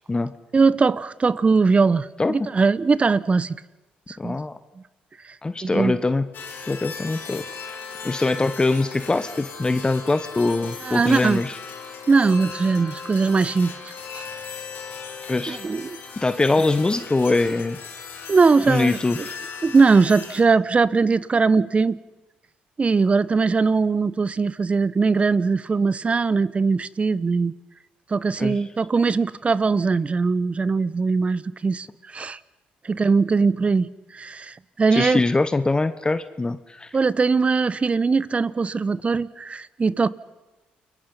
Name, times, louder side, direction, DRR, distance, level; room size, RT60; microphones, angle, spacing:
voice 1, 0.5-3.6 4.1-4.4 5.6-6.0 10.8-11.4 12.1-13.7 14.1-14.2 15.5-16.0 18.3-19.0 19.6-22.0 22.8-27.5 28.1-31.9 32.1-32.4 32.8-35.2 36.9-40.1, right 4 dB, 30° right, 18 dB, 1.0 m, -20 dB
voice 2, 2.2-2.5 4.2-4.6 5.4-6.3 6.6-7.8 8.0-11.6 15.3-15.6 16.2-17.8 18.7-19.4 28.4-28.5 34.9-37.0, left 3 dB, 20° left, 12 dB, 1.2 m, -23 dB
sound 1, 6.3-20.4, left 5 dB, 60° left, 4.6 m, -37 dB
29.5 x 22.0 x 5.7 m, 1.1 s
hypercardioid pair, 60°, 4 cm